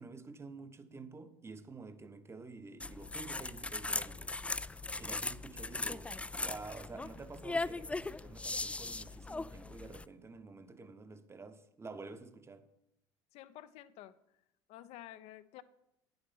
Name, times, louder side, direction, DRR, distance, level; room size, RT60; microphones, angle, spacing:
voice 1, 0.0-4.3 5.0-12.6, right 3 dB, 20° right, 1.0 m, -49 dB
sound 1, 2.8-10.0, left 3 dB, 10° left, 0.4 m, -39 dB
voice 2, 13.3-14.2 14.7-15.6, left 14 dB, 60° left, 0.7 m, -51 dB
9.8 x 7.9 x 5.5 m
hypercardioid pair, 65°, 12 cm